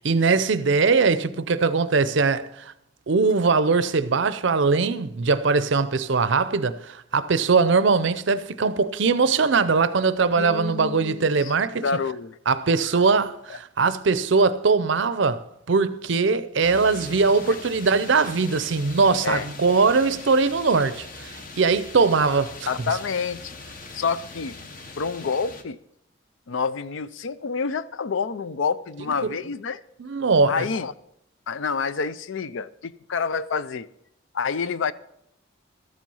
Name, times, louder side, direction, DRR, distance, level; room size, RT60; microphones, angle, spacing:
voice 1, 0.0-2.7 3.1-11.8 12.5-22.7 29.2-29.3 30.0-30.7, right 4 dB, 60° right, 0.5 m, -21 dB
voice 2, 10.4-12.4 19.2-19.5 22.7-23.6 23.9-24.5 25.0-25.8 26.5-29.8 30.5-30.9 31.5-33.9 34.3-34.9, left 5 dB, 65° left, 0.5 m, -28 dB
sound 1, 16.6-25.6, left 3 dB, 40° left, 1.0 m, -41 dB
13.5 x 7.5 x 5.5 m
head